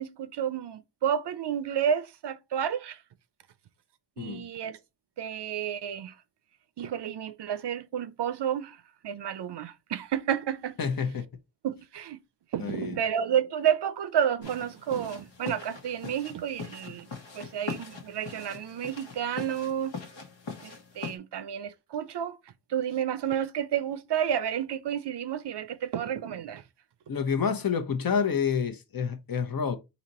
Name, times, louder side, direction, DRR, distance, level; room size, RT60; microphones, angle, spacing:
voice 1, 0.0-3.0 4.2-4.8 5.2-6.1 6.8-8.8 9.0-10.8 11.6-12.2 12.5-17.1 17.3-20.0 20.6-22.4 22.7-26.6, right 9 dB, 65° right, 0.6 m, -30 dB
voice 2, 4.2-4.5 10.8-11.2 12.6-13.0 27.1-29.8, left 6 dB, 50° left, 0.8 m, -28 dB
sound 1, 14.4-21.2, left 4 dB, 75° left, 1.2 m, -41 dB
4.1 x 2.9 x 4.1 m
cardioid pair, 65°, 45 cm